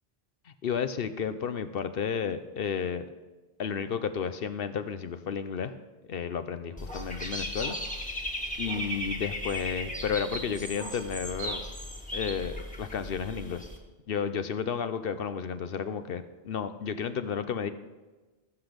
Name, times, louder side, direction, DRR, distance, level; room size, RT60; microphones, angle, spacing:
voice 1, 0.6-3.0 3.6-5.7 6.1-7.8 8.6-11.6 12.1-13.6 14.1-17.7, left 7 dB, 65° left, 11 dB, 0.9 m, -32 dB
Dog / Bird, 6.8-13.8, equal, 5° left, 1.7 m, -36 dB
19.5 x 8.0 x 5.2 m, 1.2 s
omnidirectional pair, 1.1 m